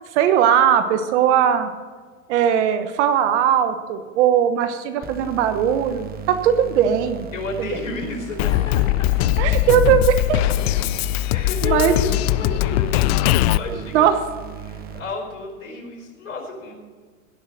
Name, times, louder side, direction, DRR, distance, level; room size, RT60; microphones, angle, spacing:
voice 1, 0.1-1.7 2.3-7.3 7.6-7.7 9.4-10.4 11.6-11.9 13.9-14.1, right 9 dB, 55° right, 9 dB, 1.1 m, -19 dB
sound 1, 5.0-15.0, right 7 dB, 20° right, 1.2 m, -36 dB
voice 2, 7.3-9.3 11.3-13.0 13.6-14.1 14.6-16.7, left 3 dB, 85° left, 1 dB, 4.7 m, -31 dB
Drum kit, 8.4-13.6, left 16 dB, 50° left, 0.4 m, -20 dB
16.5 x 5.8 x 7.9 m, 1.5 s
hypercardioid pair, 120°, 41 cm